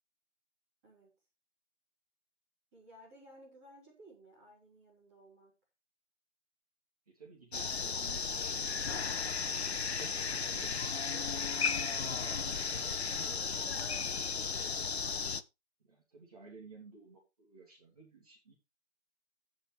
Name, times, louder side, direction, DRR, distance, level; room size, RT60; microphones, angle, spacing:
voice 1, 0.8-1.1 2.7-5.6, right 1 dB, 10° right, -7 dB, 3.4 m, -57 dB
voice 2, 7.1-8.9 9.2-11.5 12.6-13.8 15.8-18.5, right 4 dB, 30° right, -3 dB, 3.0 m, -56 dB
sound 1, 7.5-15.4, left 5 dB, 60° left, 0.7 m, -35 dB
16.5 x 5.9 x 3.3 m, 0.25 s
figure-of-eight pair, 170°, 36 cm